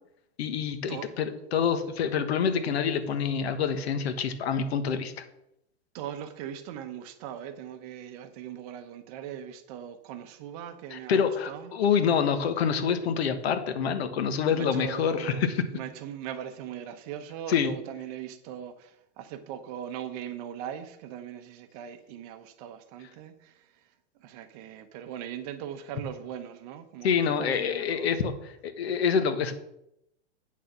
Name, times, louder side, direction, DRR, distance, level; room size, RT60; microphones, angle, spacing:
voice 1, 0.4-5.2 10.9-15.6 17.5-17.7 27.0-29.5, left 7 dB, 70° left, 1.4 m, -27 dB
voice 2, 5.9-11.7 14.5-15.5 15.7-23.7 24.2-28.2, right 9 dB, 35° right, 0.9 m, -40 dB
8.6 x 6.5 x 6.1 m
hypercardioid pair, 155°, 33 cm